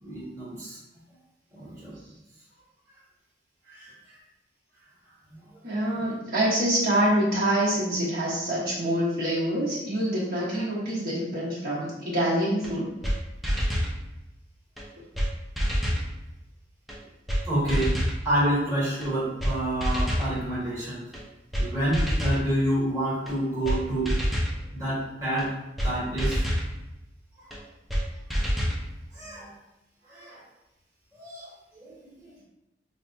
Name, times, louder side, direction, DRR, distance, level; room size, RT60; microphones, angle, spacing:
voice 1, 0.0-0.8 1.5-1.9 17.5-17.9 18.2-21.0 21.6-24.1 24.8-25.5 25.8-26.4 29.2-29.5 30.1-30.4 31.2-31.4 31.8-31.9, right 1 dB, 20° right, -10 dB, 1.3 m, -28 dB
voice 2, 5.6-12.9, right 1 dB, 55° right, -9 dB, 1.1 m, -26 dB
sound 1, 12.6-12.7 13.0-13.2 13.4-13.9 14.8-14.9 15.2-15.3 15.6-16.1 16.9-17.0 17.3-17.4 17.7-18.2 19.0-19.1 19.4-19.5 19.8-20.3 21.1-21.2 21.5-21.7 21.9-22.4 23.3-23.4 23.6-23.8 24.1-24.5 25.4-25.5 25.8-25.9 26.2-26.7 27.5-27.6 27.9-28.0 28.3-28.8, equal, ahead, 0.4 m, -26 dB
5.0 x 2.2 x 2.6 m, 0.90 s
head